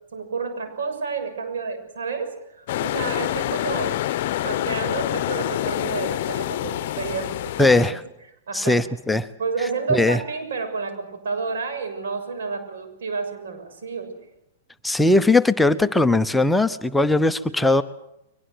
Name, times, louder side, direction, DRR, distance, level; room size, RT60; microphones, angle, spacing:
voice 1, 0.1-4.0 4.4-8.0 8.5-8.8 9.4-14.1, right 4 dB, 80° right, 7 dB, 6.7 m, -30 dB
sound 1, 2.7-7.9, left 14 dB, 60° left, 0.8 m, -27 dB
voice 2, 7.6-8.0 8.5-9.3 9.9-10.2 14.8-17.8, left 2 dB, 5° left, 10 dB, 0.8 m, -19 dB
23.0 x 20.5 x 8.0 m, 0.83 s
hypercardioid pair, 130°, 0 cm